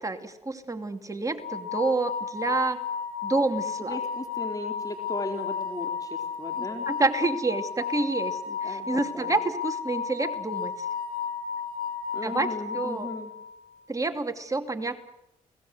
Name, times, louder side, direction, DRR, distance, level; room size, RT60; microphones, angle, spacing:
voice 1, 0.0-2.8 3.2-4.0 6.6-10.9 12.2-12.5 12.7-13.1 13.9-15.0, right 3 dB, 20° right, 6 dB, 2.7 m, -28 dB
sound 1, 1.4-13.6, left 6 dB, 70° left, 6.9 m, -33 dB
voice 2, 3.8-6.9 8.5-9.4 12.1-13.3, left 2 dB, 25° left, 3 dB, 4.2 m, -37 dB
30.0 x 19.5 x 8.0 m, 0.86 s
supercardioid pair, 70°, 15 cm